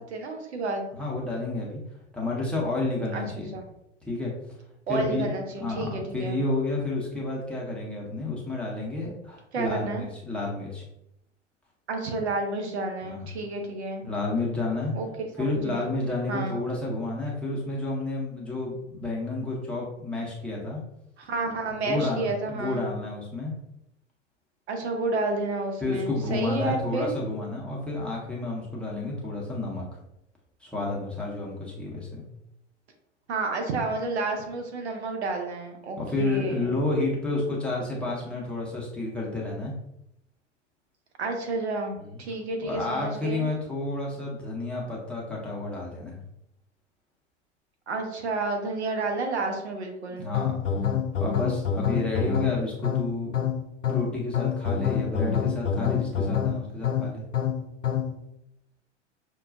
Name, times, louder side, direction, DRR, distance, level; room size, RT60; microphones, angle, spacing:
voice 1, 0.1-0.9 3.1-3.2 3.5-3.6 4.9-6.4 9.5-10.1 11.9-14.0 14.9-15.1 15.6-15.8 16.3-16.6 21.2-22.9 24.7-27.1 33.3-36.8 41.2-43.5 47.9-50.2, right 2 dB, 65° right, 3 dB, 0.9 m, -30 dB
voice 2, 0.9-1.8 2.1-3.5 4.0-4.3 4.9-5.3 5.6-10.8 13.0-13.3 14.0-14.9 15.4-20.8 21.8-23.5 25.8-30.0 30.6-32.2 36.0-39.7 42.0-42.2 42.6-46.2 50.1-50.6 51.2-53.3 53.9-57.2, left 2 dB, 5° left, -3 dB, 0.7 m, -30 dB
sound 1, 50.3-58.2, left 8 dB, 85° left, 0.5 m, -27 dB
5.9 x 2.2 x 2.5 m, 0.80 s
figure-of-eight pair, 90°, 36 cm